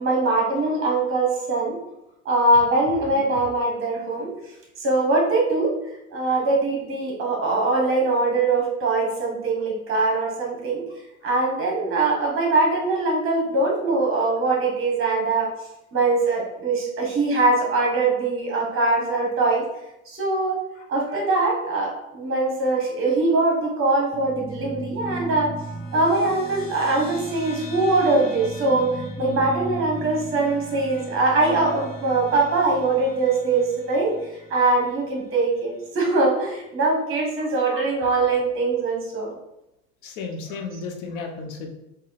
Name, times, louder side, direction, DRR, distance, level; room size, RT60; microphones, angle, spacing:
voice 1, 0.0-1.8 2.2-4.3 4.8-5.7 6.1-10.8 11.2-15.5 15.9-19.6 20.1-20.6 20.9-25.5 25.9-28.9 29.2-39.3, right 2 dB, 30° right, -1 dB, 1.5 m, -22 dB
sound 1, 24.1-34.9, right 1 dB, 15° left, 0.7 m, -36 dB
voice 2, 40.0-41.8, left 4 dB, 60° left, 2 dB, 1.1 m, -34 dB
4.2 x 2.7 x 4.0 m, 0.87 s
hypercardioid pair, 110°, 41 cm